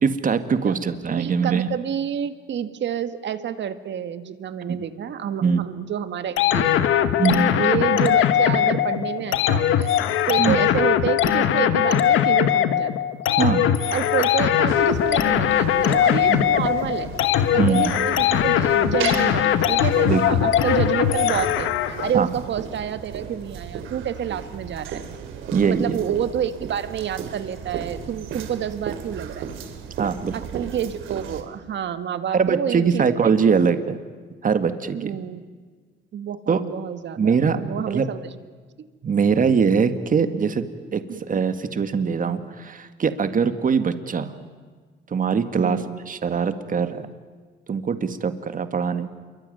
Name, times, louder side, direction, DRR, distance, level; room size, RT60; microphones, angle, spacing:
voice 1, 0.0-1.7 4.7-4.9 5.4-5.6 7.2-7.6 10.4-10.6 13.4-13.7 16.3-16.4 17.6-17.9 20.0-20.2 22.1-22.3 25.5-26.0 30.0-30.4 32.3-34.0 34.4-35.1 36.5-36.6 37.2-38.1 39.0-40.7 40.9-41.0 41.3-44.3 45.1-47.1 47.7-49.1, right 6 dB, 45° right, 10 dB, 1.9 m, -22 dB
voice 2, 1.2-7.1 7.6-9.9 10.3-12.9 13.9-17.1 17.5-25.0 25.7-29.5 30.3-33.3 34.9-35.4 36.1-38.4 41.1-41.2 45.5-46.0, right 9 dB, 65° right, 10 dB, 1.7 m, -28 dB
sound 1, 6.4-22.1, left 10 dB, 85° left, 1.4 m, -20 dB
sound 2, 14.7-31.4, right 7 dB, 85° right, 2.9 m, -36 dB
27.5 x 23.5 x 9.3 m, 1.5 s
cardioid pair, 90°, 20 cm